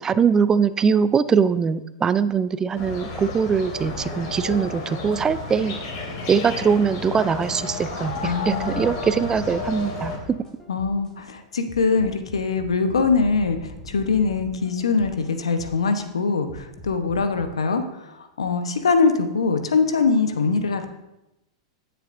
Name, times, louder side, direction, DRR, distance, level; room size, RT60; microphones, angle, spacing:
voice 1, 0.0-5.8 6.3-10.4, right 6 dB, 20° right, 15 dB, 0.4 m, -22 dB
sound 1, 2.7-10.2, left 3 dB, 55° left, 2.8 m, -32 dB
sound 2, 7.8-11.1 11.7-15.9 16.5-17.5, left 1 dB, 20° left, 2.5 m, -42 dB
voice 2, 8.2-8.9 10.7-20.9, left 4 dB, 85° left, 8 dB, 0.9 m, -23 dB
15.5 x 6.8 x 2.6 m, 0.94 s
hypercardioid pair, 110°, 3 cm